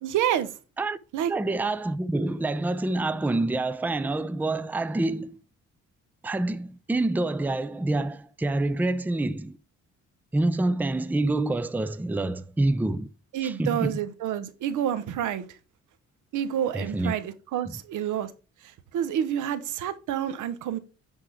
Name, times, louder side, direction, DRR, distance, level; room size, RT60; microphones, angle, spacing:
voice 1, 0.0-0.5 1.1-1.3 13.3-15.4 16.3-18.3 18.9-20.8, right 10 dB, 80° right, 1.0 m, -28 dB
voice 2, 1.3-5.4 6.2-9.6 10.3-13.1 13.4-14.0 16.7-17.1, right 2 dB, 5° right, 0.5 m, -27 dB
10.0 x 3.7 x 4.9 m
cardioid pair, 90°, 30 cm